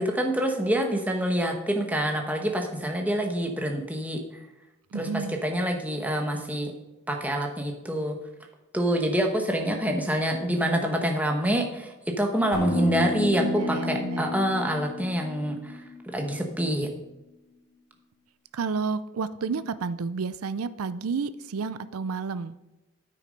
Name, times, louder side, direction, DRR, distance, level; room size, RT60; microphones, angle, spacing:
voice 1, 0.0-4.2 4.9-6.7 7.1-8.2 8.7-16.9, equal, 5° right, 2 dB, 1.2 m, -26 dB
voice 2, 4.9-5.4 13.4-14.4 18.5-22.6, right 5 dB, 90° right, 14 dB, 0.5 m, -31 dB
sound 1, 12.5-16.7, left 1 dB, 55° left, 2.7 m, -31 dB
9.4 x 8.5 x 5.2 m, 0.99 s
head